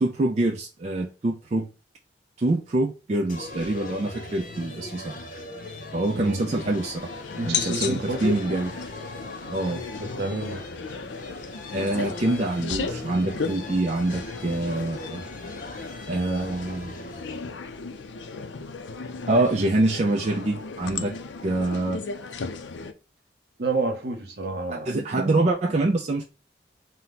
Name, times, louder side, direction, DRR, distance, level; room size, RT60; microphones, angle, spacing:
voice 1, 0.0-1.7 2.4-5.2 5.9-7.1 7.4-8.7 9.5-9.8 11.7-15.2 16.1-17.1 19.3-21.2 21.4-22.0 24.7-26.2, right 2 dB, 35° right, 0.4 m, -25 dB
sound 1, 3.3-17.4, left 2 dB, 45° left, 0.6 m, -40 dB
voice 2, 6.1-6.5 7.4-8.4 10.0-10.6 18.9-19.0 23.6-24.9, right 2 dB, 60° right, 1.0 m, -29 dB
sound 2, 6.4-22.9, left 5 dB, 90° left, 0.5 m, -35 dB
4.3 x 2.1 x 3.9 m
head